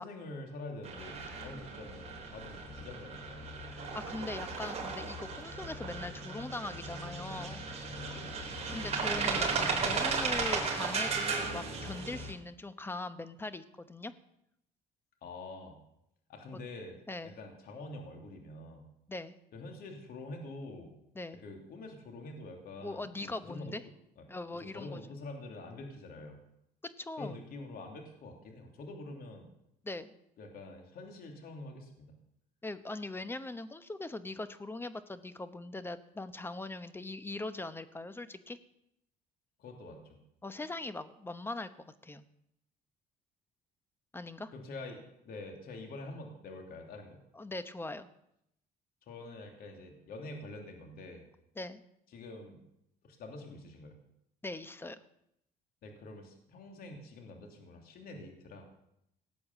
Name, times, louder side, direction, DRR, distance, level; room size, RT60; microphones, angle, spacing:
voice 1, 0.0-3.5 8.1-8.3 15.2-15.8 16.3-17.0 17.3-18.8 19.5-20.9 21.4-23.7 24.2-24.3 24.6-26.4 27.2-29.5 30.4-32.1 39.6-40.2 44.5-47.2 49.1-51.2 52.1-52.6 53.0-54.0 55.8-58.6, left 2 dB, 60° left, 3 dB, 3.0 m, -46 dB
sound 1, 0.8-12.3, right 4 dB, 40° right, 4.2 m, -35 dB
voice 2, 3.7-7.7 8.7-14.1 17.1-17.4 19.1-19.4 21.1-21.4 22.8-23.8 24.3-25.0 26.8-27.4 29.8-30.1 32.6-38.6 40.4-41.7 42.0-42.2 44.1-44.5 47.3-48.1 51.6-51.8 54.4-55.0, left 2 dB, 15° left, 12 dB, 1.0 m, -41 dB
18.0 x 8.6 x 7.4 m, 0.79 s
cardioid pair, 110°, 17 cm